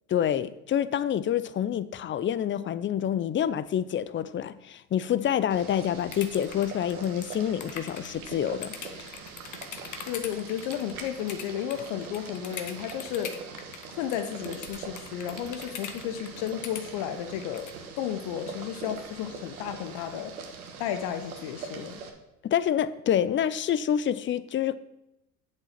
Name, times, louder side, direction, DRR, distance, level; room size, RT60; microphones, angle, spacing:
voice 1, 0.1-9.2 22.4-24.8, left 10 dB, 30° left, 0.5 m, -27 dB
Boiling, 5.5-22.1, right 5 dB, 85° right, 1.3 m, -43 dB
sound 1, 6.0-13.9 14.1-16.8 17.4-17.8, left 8 dB, 45° left, 1.2 m, -41 dB
voice 2, 10.0-13.4 13.9-17.7 18.0-20.3 20.8-22.0, left 10 dB, 65° left, 0.8 m, -33 dB
8.2 x 6.9 x 5.8 m
hypercardioid pair, 70°, 42 cm